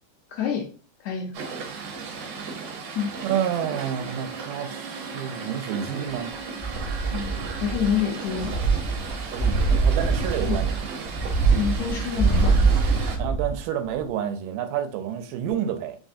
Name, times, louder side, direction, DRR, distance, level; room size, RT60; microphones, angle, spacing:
voice 1, 0.3-0.7 1.0-1.4 3.0-3.1 7.1-8.6 10.4-10.6 11.6-12.7, left 8 dB, 75° left, 1.8 m, -27 dB
sound 1, 1.3-13.2, right 4 dB, 65° right, 1.7 m, -36 dB
voice 2, 3.2-6.3 9.3-10.8 13.2-16.0, right 9 dB, 85° right, 2.2 m, -29 dB
Wind instrument woodwind instrument, 3.5-8.5, right 5 dB, 30° right, 0.8 m, -42 dB
sound 2, 6.6-8.0 8.3-13.6 14.0-14.1, right 4 dB, 55° left, 0.8 m, -23 dB
5.0 x 3.2 x 2.7 m
omnidirectional pair, 3.7 m